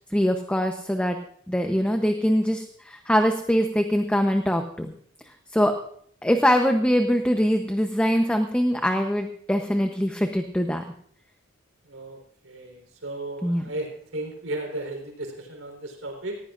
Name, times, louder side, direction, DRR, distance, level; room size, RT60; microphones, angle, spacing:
voice 1, 0.1-1.2 1.5-4.9 5.5-5.8 6.2-10.8 13.4-13.7, equal, 5° left, 5 dB, 0.8 m, -23 dB
voice 2, 11.9-12.2 12.4-16.4, right 2 dB, 80° right, 2 dB, 3.9 m, -35 dB
19.0 x 15.0 x 2.5 m, 0.64 s
head